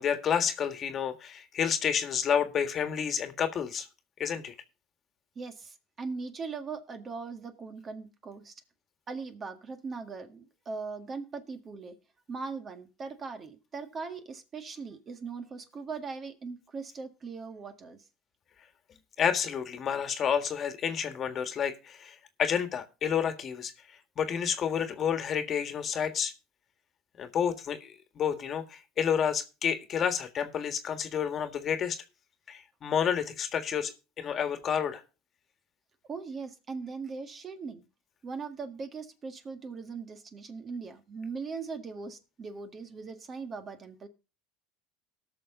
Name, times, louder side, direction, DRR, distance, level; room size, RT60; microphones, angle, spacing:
voice 1, 0.0-3.9 4.2-4.5 19.2-23.7 24.2-26.3 27.2-32.0 32.5-35.0, left 8 dB, 40° left, 1.6 m, -30 dB
voice 2, 5.4-8.6 9.1-12.0 12.3-18.0 36.1-37.8 38.2-44.1, right 4 dB, 35° right, 1.8 m, -40 dB
18.5 x 6.4 x 3.8 m
supercardioid pair, 105°, 0 cm